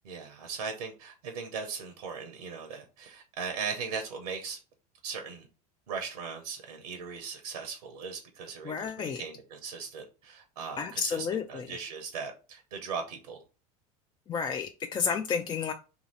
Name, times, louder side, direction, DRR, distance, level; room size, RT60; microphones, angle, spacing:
voice 1, 0.0-4.6 5.0-5.5 5.9-13.4, right 5 dB, 90° right, 0.8 m, -38 dB
voice 2, 8.6-9.2 10.8-11.7 14.3-15.7, left 6 dB, 25° left, 0.3 m, -31 dB
2.8 x 2.7 x 4.1 m
hypercardioid pair, 90°, 20 cm